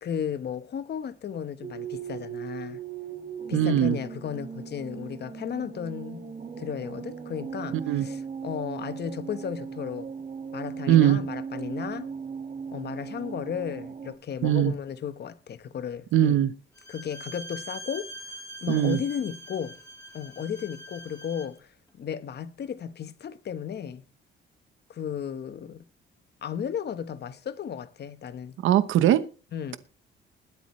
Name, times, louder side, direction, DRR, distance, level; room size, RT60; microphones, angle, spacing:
voice 1, 0.0-2.8 3.5-6.3 6.6-10.1 10.5-12.1 12.7-16.4 16.9-18.1 18.6-19.8 20.1-21.7 21.9-24.0 24.9-25.8 26.4-28.6 29.5-29.8, left 8 dB, 55° left, 1.3 m, -34 dB
sound 1, 1.6-14.1, right 6 dB, 40° right, 2.0 m, -38 dB
voice 2, 3.5-4.0 7.9-8.0 10.9-11.2 14.4-14.7 16.1-16.5 18.7-19.0 28.6-29.2, right 11 dB, 80° right, 1.0 m, -20 dB
Bowed string instrument, 16.7-21.6, right 1 dB, 20° left, 6.1 m, -43 dB
21.0 x 8.3 x 3.2 m
cardioid pair, 90°, 20 cm